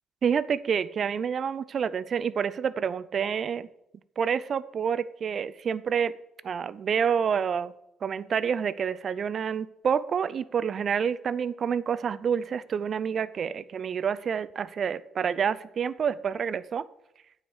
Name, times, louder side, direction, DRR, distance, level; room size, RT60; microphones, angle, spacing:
voice 1, 0.2-3.7 4.2-6.1 6.4-7.7 8.0-16.9, right 7 dB, 45° right, 16 dB, 0.4 m, -28 dB
9.4 x 4.9 x 7.0 m, 0.82 s
cardioid pair, 110°, 0 cm